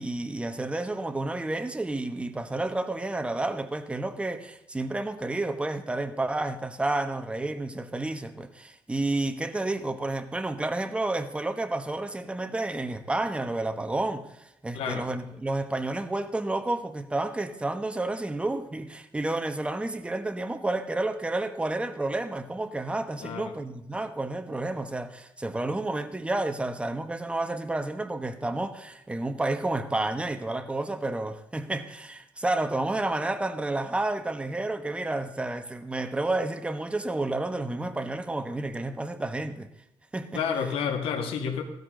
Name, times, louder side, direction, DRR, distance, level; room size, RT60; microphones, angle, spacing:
voice 1, 0.0-39.7 40.1-40.4, right 2 dB, 10° right, 1.1 m, -30 dB
voice 2, 14.7-15.1 23.2-23.6 40.3-41.6, left 7 dB, 85° left, 2.0 m, -30 dB
15.5 x 13.5 x 3.9 m
cardioid pair, 115°, 9 cm